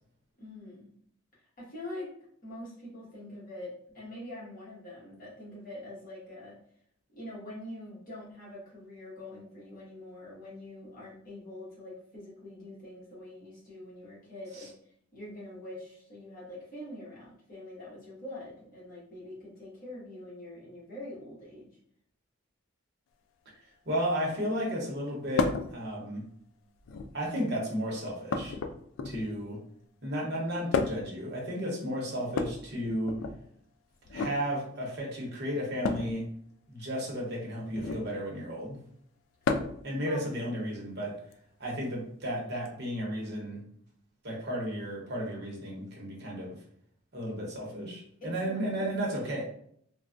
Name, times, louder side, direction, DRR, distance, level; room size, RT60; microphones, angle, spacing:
voice 1, 0.4-0.9 1.6-2.1 2.4-6.6 7.1-14.7 15.1-21.7 39.9-40.2 48.2-48.9, left 1 dB, 40° left, -7 dB, 1.3 m, -44 dB
voice 2, 23.8-26.3 27.1-28.6 29.0-29.6 30.0-33.2 34.1-36.2 36.7-38.8 39.8-41.2 41.6-43.6 44.2-46.6 47.1-49.4, equal, 50° right, -3 dB, 0.9 m, -33 dB
sound 1, 25.4-25.7 26.8-27.3 28.3-29.4 30.7-31.2 32.3-33.4 34.0-34.4 35.8-36.1 37.7-38.1 39.4-39.9 41.3-41.4 42.6-42.7, left 4 dB, 70° left, 0.3 m, -31 dB
3.2 x 2.2 x 2.5 m, 0.66 s
head